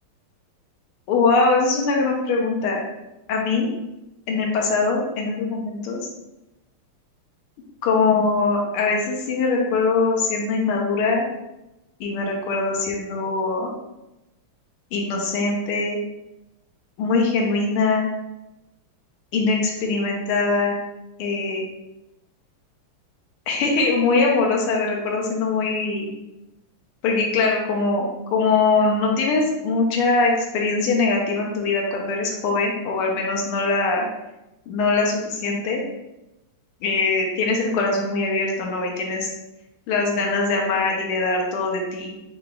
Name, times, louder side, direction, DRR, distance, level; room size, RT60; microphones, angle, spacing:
voice 1, 1.1-2.8 3.3-3.7 4.3-6.0 7.8-11.2 12.0-13.7 14.9-16.0 17.0-18.1 19.3-20.7 21.2-21.6 23.5-26.1 27.0-34.1 34.7-35.8 36.8-39.3 39.9-42.2, left 3 dB, 85° left, 0 dB, 1.6 m, -22 dB
5.8 x 3.4 x 2.2 m, 0.94 s
omnidirectional pair, 2.4 m